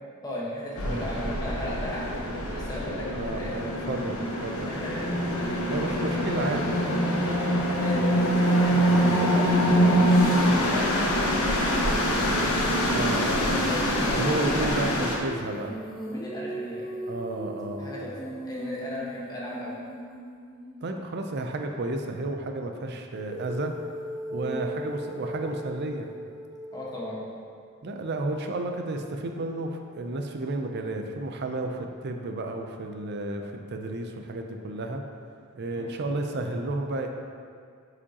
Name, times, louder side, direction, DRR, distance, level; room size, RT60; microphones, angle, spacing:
voice 1, 0.2-3.8 4.7-6.4 7.8-11.0 11.3-12.3 13.1-14.9 16.1-16.8 17.8-19.8 24.4-24.6 26.7-27.2 35.7-35.9, left 1 dB, 15° left, -6 dB, 1.2 m, -37 dB
sound 1, 0.8-15.2, equal, 85° left, 1.0 m, -24 dB
voice 2, 0.8-1.2 3.1-4.7 5.6-6.8 12.9-13.6 14.1-15.8 17.1-17.9 20.8-23.7 24.3-26.1 27.8-35.0 35.6-37.1, right 2 dB, 50° right, 4 dB, 0.5 m, -32 dB
Female singing, 12.0-20.9 23.1-27.3, right 1 dB, ahead, 1.0 m, -38 dB
8.4 x 5.0 x 2.9 m, 2.3 s
head